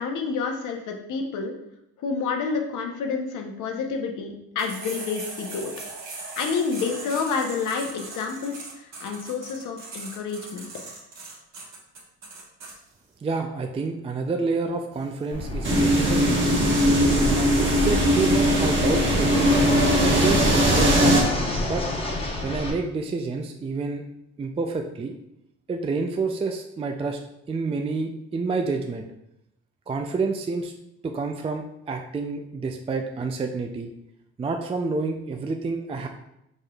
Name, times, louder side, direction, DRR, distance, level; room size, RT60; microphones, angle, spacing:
voice 1, 0.0-1.5 2.0-5.7 6.4-10.7, left 5 dB, 85° left, 3 dB, 0.8 m, -29 dB
sound 1, 4.6-12.7, right 3 dB, 60° right, 1.6 m, -39 dB
voice 2, 13.2-16.6 17.2-21.8 22.4-24.0 24.4-25.1 25.7-27.2 27.5-29.0 29.9-30.7 31.0-33.9 34.4-36.1, right 4 dB, 20° right, 4 dB, 0.3 m, -29 dB
Fixed-wing aircraft airplane, 15.3-22.7, left 2 dB, 20° left, 0.9 m, -30 dB
sound 2, 15.6-21.2, equal, 40° right, 1.3 m, -20 dB
4.9 x 4.4 x 2.3 m, 0.81 s
cardioid pair, 90°, 30 cm